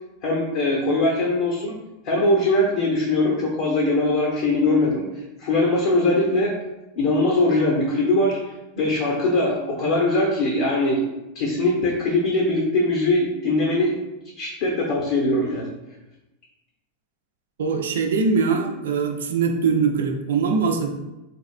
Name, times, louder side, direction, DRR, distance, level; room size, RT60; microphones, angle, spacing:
voice 1, 0.2-1.8 2.0-5.0 5.4-6.5 7.0-8.4 8.7-11.0 11.3-14.0 14.4-15.7, left 2 dB, 60° left, -3 dB, 0.9 m, -21 dB
voice 2, 17.6-20.9, right 5 dB, 75° right, 4 dB, 0.5 m, -22 dB
4.1 x 3.5 x 2.4 m, 1.0 s
hypercardioid pair, 95°, 0 cm